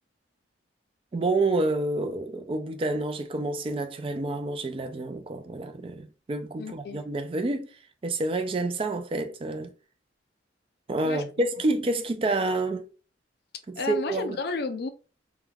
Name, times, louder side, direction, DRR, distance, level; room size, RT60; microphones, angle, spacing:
voice 1, 1.1-7.7 8.0-9.7 10.9-12.9 13.9-14.4, right 2 dB, 30° right, 0.3 m, -28 dB
voice 2, 6.6-7.1 11.0-11.2 13.8-14.9, left 4 dB, 55° left, 0.4 m, -32 dB
3.2 x 2.2 x 2.3 m
head